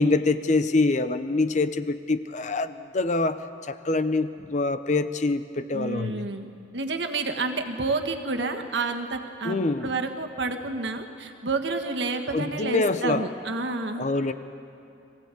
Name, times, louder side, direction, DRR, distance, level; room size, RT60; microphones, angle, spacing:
voice 1, 0.0-6.3 9.4-9.9 12.3-13.2 14.0-14.3, left 3 dB, 40° left, 11 dB, 0.7 m, -25 dB
voice 2, 5.7-6.5 6.7-14.1, right 3 dB, 70° right, 4 dB, 1.5 m, -29 dB
22.5 x 16.0 x 8.3 m, 2.6 s
head